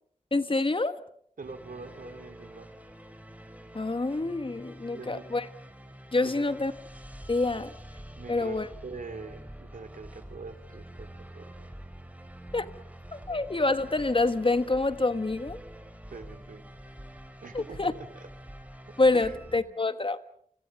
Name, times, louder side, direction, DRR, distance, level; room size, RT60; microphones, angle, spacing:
voice 1, 0.3-1.0 3.7-5.5 6.1-6.7 7.3-7.7 8.3-8.7 12.5-12.7 13.1-15.6 17.5-17.9 19.0-20.2, left 3 dB, 40° left, 1.4 m, -27 dB
sound 1, 1.4-19.6, equal, 10° right, 4.1 m, -47 dB
voice 2, 1.4-2.7 4.9-5.2 6.2-6.5 7.5-7.6 8.1-11.7 16.1-16.6 17.4-18.3 18.9-19.7, right 4 dB, 85° right, 2.6 m, -44 dB
30.0 x 25.0 x 5.4 m
wide cardioid pair, 70°, 14 cm